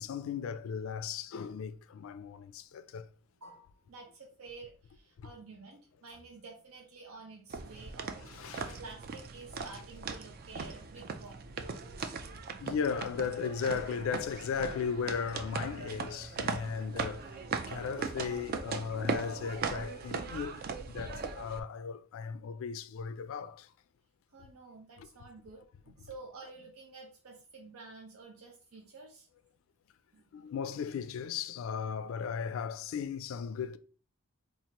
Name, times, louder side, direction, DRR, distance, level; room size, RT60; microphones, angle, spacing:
voice 1, 0.0-3.1 5.2-5.3 8.2-8.8 12.0-12.1 12.6-17.4 17.7-23.7 25.0-25.1 30.3-33.8, left 6 dB, 65° left, 0.3 m, -36 dB
voice 2, 3.4-11.5 24.3-29.3 30.1-30.3, right 3 dB, 80° right, 0.6 m, -50 dB
sound 1, 7.5-21.6, right 5 dB, 45° right, 0.3 m, -39 dB
4.4 x 2.4 x 2.8 m
head